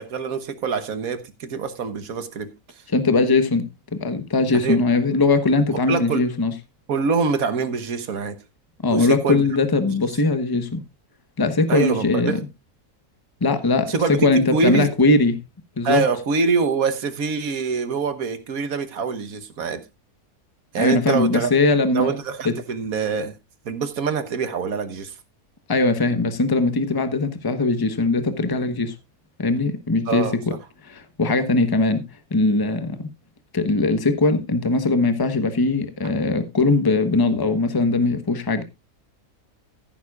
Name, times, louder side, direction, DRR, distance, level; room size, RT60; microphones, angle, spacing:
voice 1, 0.0-2.5 4.5-4.8 5.9-6.3 6.9-8.4 8.9-9.4 11.7-12.4 13.9-14.9 15.8-19.8 20.7-21.5 21.9-23.4 23.6-25.2 30.1-30.4, right 5 dB, 70° right, 1.6 m, -24 dB
voice 2, 2.9-6.5 8.8-10.8 11.4-12.4 13.4-15.4 15.8-16.0 20.8-22.1 22.4-22.5 25.7-28.9 29.4-30.3 30.8-32.0 32.3-33.1 33.5-38.6, left 3 dB, 15° left, 1.0 m, -20 dB
14.5 x 11.5 x 2.4 m
omnidirectional pair, 1.6 m